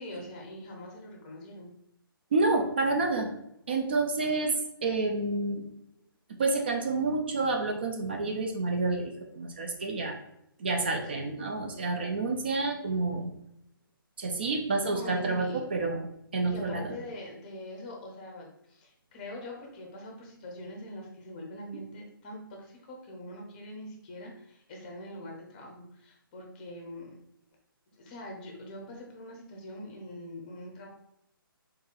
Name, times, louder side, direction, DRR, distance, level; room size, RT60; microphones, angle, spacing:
voice 1, 0.0-1.7 10.7-11.2 14.4-14.5 14.8-15.6 16.5-27.2 27.9-30.9, left 1 dB, 20° left, 0 dB, 0.6 m, -43 dB
voice 2, 2.3-3.3 3.7-4.5 4.8-5.7 6.4-10.1 10.6-13.3 14.2-16.1 16.3-16.9, right 3 dB, 25° right, 4 dB, 0.4 m, -29 dB
4.0 x 2.7 x 3.7 m, 0.77 s
hypercardioid pair, 170°, 12 cm